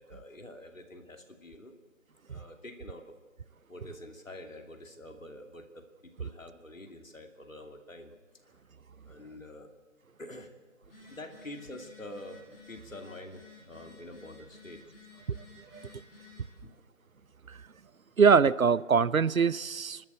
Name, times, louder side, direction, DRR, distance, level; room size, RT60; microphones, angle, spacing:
voice 1, 0.0-1.8 2.3-3.1 3.7-8.6 9.0-9.7 10.2-10.5 11.1-14.9 15.2-15.3 16.6-16.8, left 1 dB, 75° left, 2.9 m, -47 dB
Telephone, 10.8-16.5, left 4 dB, 45° left, 6.2 m, -54 dB
voice 2, 18.2-20.0, right 6 dB, 85° right, 0.7 m, -23 dB
28.5 x 13.0 x 7.9 m
figure-of-eight pair, 155°, 40 cm